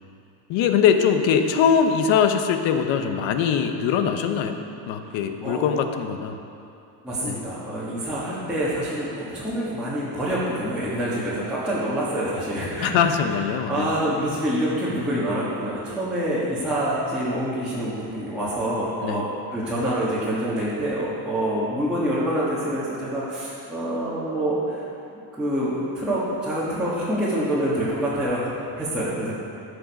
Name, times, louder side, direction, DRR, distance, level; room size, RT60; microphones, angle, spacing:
voice 1, 0.5-4.6 4.9-6.4 7.2-7.4 12.8-14.0 19.0-19.2, left 7 dB, 75° left, 7 dB, 1.0 m, -22 dB
voice 2, 5.0-5.7 7.0-12.9 13.7-24.9 25.3-29.3, right 1 dB, ahead, -11 dB, 1.5 m, -26 dB
14.5 x 6.7 x 5.3 m, 2.6 s
cardioid pair, 175°, 45 cm